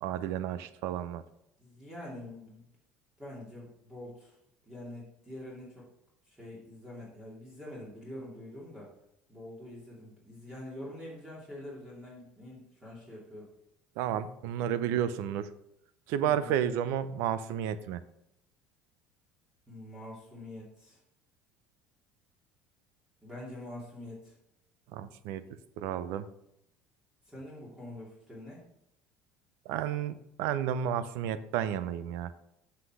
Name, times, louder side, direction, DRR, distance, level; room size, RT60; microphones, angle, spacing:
voice 1, 0.0-1.2 14.0-15.5 16.1-18.0 24.9-25.4 25.8-26.3 29.7-32.3, right 10 dB, 75° right, 14 dB, 0.6 m, -31 dB
voice 2, 1.6-2.6 3.2-4.3 4.6-5.9 6.3-8.9 9.3-13.5 16.2-16.5 19.7-21.0 23.2-24.3 27.3-28.6, left 1 dB, 15° right, -5 dB, 2.7 m, -45 dB
8.0 x 5.9 x 4.8 m, 0.81 s
cardioid pair, 125°, 5 cm